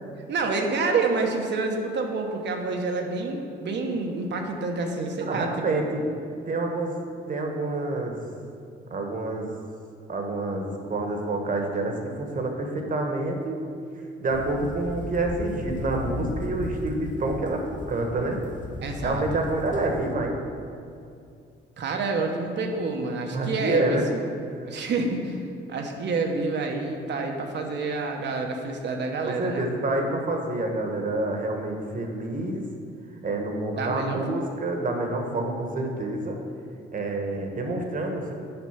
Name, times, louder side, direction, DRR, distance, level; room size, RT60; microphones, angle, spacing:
voice 1, 0.3-5.8 18.8-19.4 21.8-24.0 24.7-25.4 25.7-29.6 33.8-34.5, right 3 dB, 60° right, 3 dB, 1.1 m, -28 dB
voice 2, 5.3-6.0 6.5-6.9 7.3-8.2 8.9-9.5 10.1-13.6 14.2-18.4 19.0-20.4 23.3-24.1 29.2-32.6 33.2-36.4 36.9-38.3, right 2 dB, 45° right, 2 dB, 1.3 m, -28 dB
sound 1, 14.3-20.1, left 2 dB, 40° left, 0.9 m, -36 dB
7.9 x 5.2 x 5.8 m, 2.5 s
cardioid pair, 90°, 20 cm